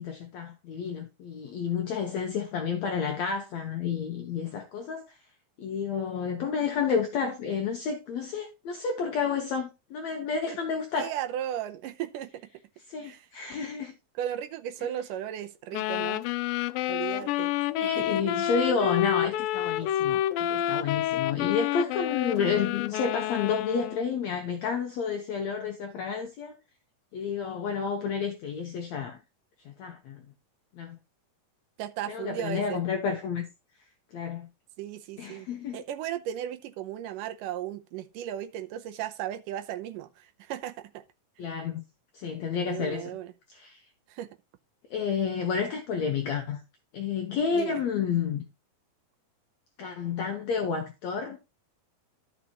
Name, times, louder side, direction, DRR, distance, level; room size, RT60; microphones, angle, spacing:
voice 1, 0.0-5.2 5.6-11.1 12.9-14.0 17.7-26.5 27.1-29.2 29.7-30.2 30.8-31.0 32.1-33.5 34.1-34.5 35.2-35.8 41.4-41.8 42.1-43.1 43.5-43.8 44.9-46.6 46.9-48.4 49.8-51.4, left 6 dB, 65° left, 2.1 m, -30 dB
voice 2, 11.0-12.3 13.0-13.3 14.2-16.3 16.9-17.5 17.8-18.2 31.8-32.8 34.8-41.0 42.7-43.3 44.1-44.3 47.5-47.8, right 11 dB, 80° right, 2.3 m, -36 dB
sound 1, 15.7-24.1, left 12 dB, 90° left, 2.3 m, -29 dB
14.0 x 6.0 x 3.0 m
omnidirectional pair, 4.0 m